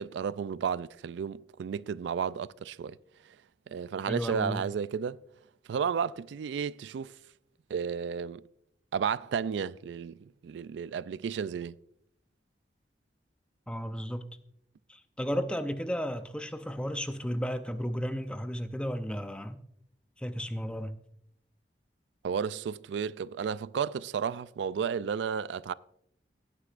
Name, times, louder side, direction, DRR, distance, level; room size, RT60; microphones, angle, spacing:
voice 1, 0.0-3.0 3.7-5.2 5.7-7.1 7.7-8.4 8.9-11.8 22.2-25.7, right 7 dB, 85° right, 0.3 m, -33 dB
voice 2, 4.1-4.6 13.7-14.3 14.9-19.6 20.2-20.9, equal, 5° left, 0.5 m, -34 dB
17.0 x 9.8 x 2.5 m
head